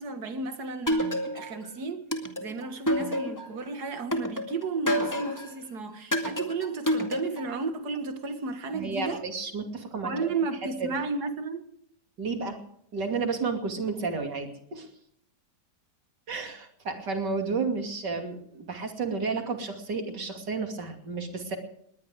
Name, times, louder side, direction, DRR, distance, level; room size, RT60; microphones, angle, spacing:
voice 1, 0.0-2.1 2.4-9.2 10.0-11.7, right 4 dB, 65° right, 2.2 m, -33 dB
sound 1, 0.9-1.6 2.1-3.6 4.1-5.5 6.1-7.6, equal, 10° left, 2.0 m, -28 dB
voice 2, 8.7-10.3 10.8-10.9 12.2-12.6 12.9-14.9 16.3-21.6, right 4 dB, 80° right, 3.3 m, -32 dB
20.5 x 19.5 x 3.6 m
omnidirectional pair, 1.8 m